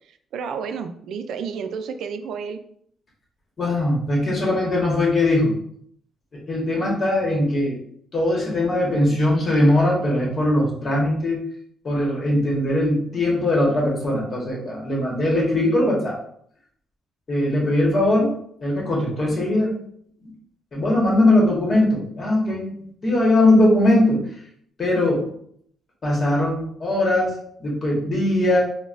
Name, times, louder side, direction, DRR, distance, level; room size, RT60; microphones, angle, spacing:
voice 1, 0.1-2.6, right 6 dB, 75° right, 9 dB, 0.3 m, -31 dB
voice 2, 3.6-5.5 6.5-7.8 8.1-11.4 11.8-16.2 17.3-19.8 20.7-22.7 23.0-24.2 24.8-25.3 26.0-28.6, left 1 dB, 40° left, -3 dB, 1.3 m, -20 dB
3.9 x 2.2 x 2.5 m, 0.66 s
cardioid pair, 90°, 0 cm